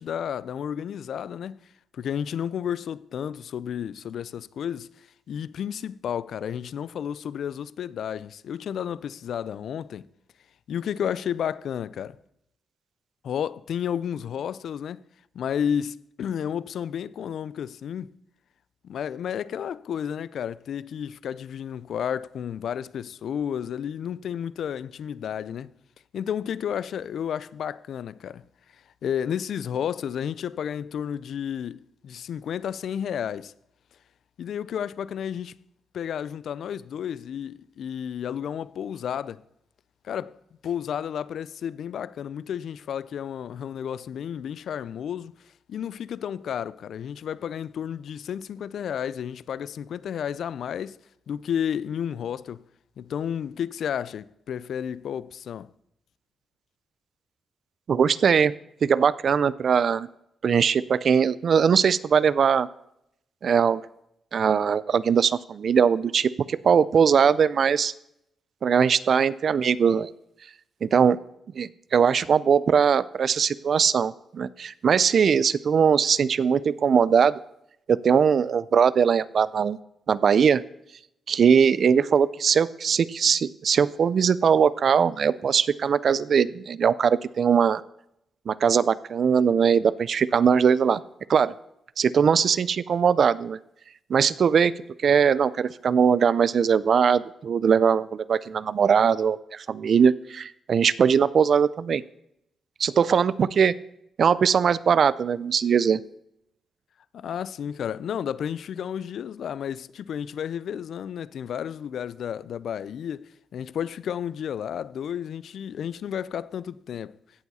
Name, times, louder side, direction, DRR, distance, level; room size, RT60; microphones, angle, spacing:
voice 1, 0.0-1.6 1.9-4.9 5.3-10.1 10.7-12.2 13.2-15.0 15.3-18.1 18.8-25.7 26.1-28.4 29.0-33.5 34.4-35.6 35.9-39.4 40.0-40.4 40.6-45.3 45.7-51.0 51.3-52.6 53.0-55.7 107.1-117.2, left 8 dB, 70° left, 0.3 m, -32 dB
voice 2, 57.9-58.5 58.8-60.1 60.4-62.7 63.4-63.8 64.3-67.9 68.6-70.1 70.8-71.2 71.6-77.3 77.9-79.8 80.1-80.6 81.3-87.8 88.5-91.0 91.3-91.5 92.0-93.6 94.1-94.7 95.0-102.0 102.8-103.7 104.2-106.0, right 7 dB, 50° right, 0.3 m, -21 dB
16.0 x 7.1 x 4.1 m
cardioid pair, 135°, 0 cm